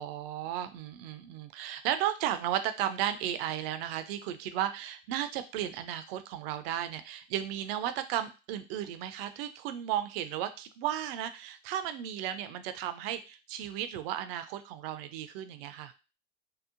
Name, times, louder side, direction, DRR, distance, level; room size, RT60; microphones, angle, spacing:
voice 1, 0.0-15.9, right 11 dB, 70° right, 10 dB, 0.4 m, -34 dB
2.7 x 2.0 x 2.5 m, 0.31 s
hypercardioid pair, 75°, 31 cm